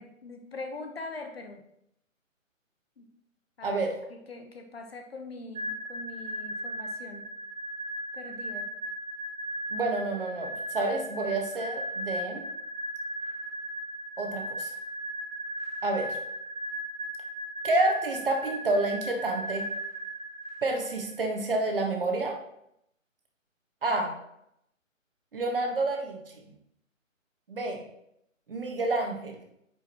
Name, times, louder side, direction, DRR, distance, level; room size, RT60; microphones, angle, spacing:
voice 1, 0.0-1.6 3.0-3.1 3.6-3.8 4.1-7.3 8.1-8.7, left 3 dB, 50° left, 4 dB, 1.1 m, -42 dB
sound 1, 5.5-21.1, equal, 80° right, 1.4 m, -37 dB
voice 2, 9.7-12.5 14.2-14.7 15.8-16.2 17.6-19.6 20.6-22.4 23.8-24.1 25.3-26.2 27.5-27.8 28.5-29.4, right 2 dB, 45° right, 2 dB, 1.4 m, -29 dB
9.7 x 5.2 x 3.0 m, 0.77 s
hypercardioid pair, 170°, 40 cm